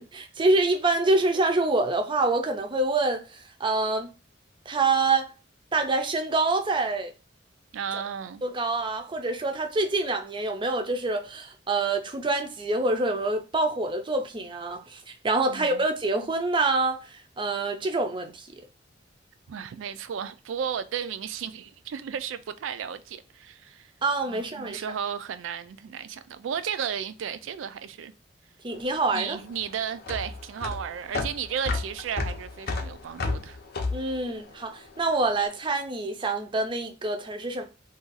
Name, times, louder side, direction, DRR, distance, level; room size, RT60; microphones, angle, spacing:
voice 1, 0.0-3.2 3.6-4.1 4.7-5.3 5.7-7.1 8.4-17.0 17.4-18.5 24.0-24.8 28.6-29.4 33.9-37.6, right 2 dB, 25° right, 0.5 m, -26 dB
voice 2, 7.7-8.5 15.5-15.9 19.5-23.9 24.3-28.1 29.1-33.6, right 8 dB, 80° right, 0.3 m, -34 dB
sound 1, 28.7-35.2, left 3 dB, 55° left, 0.6 m, -32 dB
2.6 x 2.3 x 3.8 m
head